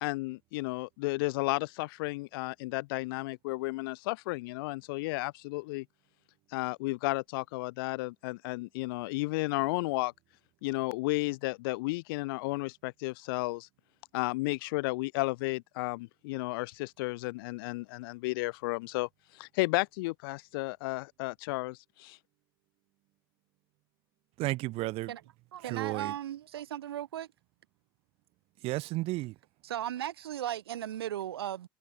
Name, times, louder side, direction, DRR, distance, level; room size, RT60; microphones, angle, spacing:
voice 1, 0.0-5.9 6.5-10.1 10.6-13.7 14.1-22.2, left 23 dB, 70° left, 0.7 m, -33 dB
voice 2, 24.4-25.1 25.6-26.1 28.6-29.4, right 20 dB, 50° right, 2.2 m, -33 dB
voice 3, 25.5-27.3 29.6-31.7, right 11 dB, 90° right, 1.1 m, -36 dB
hypercardioid pair, 105°, 12 cm